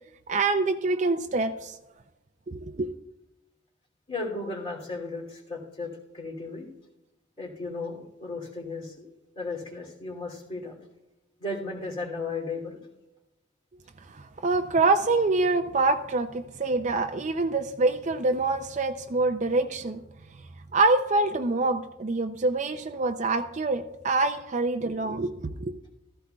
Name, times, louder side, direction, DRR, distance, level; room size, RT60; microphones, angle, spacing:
voice 1, 0.3-1.8 2.5-2.9 14.1-20.0 20.7-25.7, right 3 dB, 40° right, 8 dB, 0.5 m, -25 dB
voice 2, 4.1-6.7 7.4-9.1 9.3-10.8 11.4-12.8, left 3 dB, 30° left, -1 dB, 2.8 m, -35 dB
15.5 x 14.5 x 2.3 m, 0.94 s
head